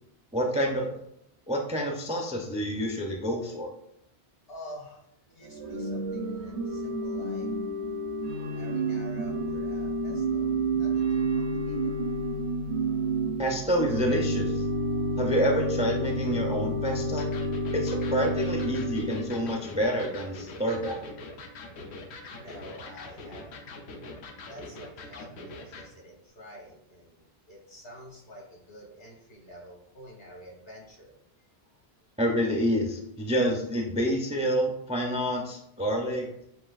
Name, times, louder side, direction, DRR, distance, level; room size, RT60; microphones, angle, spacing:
voice 1, 0.3-0.9 1.5-3.7 13.4-14.7 15.2-17.3 17.7-21.0 32.2-36.3, equal, 10° right, 1 dB, 0.3 m, -28 dB
voice 2, 4.5-5.0 5.3-7.5 8.5-11.1 11.3-11.9 22.3-23.7 24.5-31.1 31.6-31.8, equal, 60° left, -2 dB, 1.7 m, -48 dB
Organ / Church bell, 5.4-19.6, right 1 dB, 85° right, 0.9 m, -30 dB
Electric guitar, 17.2-25.9, left 2 dB, 90° left, 1.0 m, -43 dB
7.7 x 2.7 x 2.4 m, 0.77 s
omnidirectional pair, 1.1 m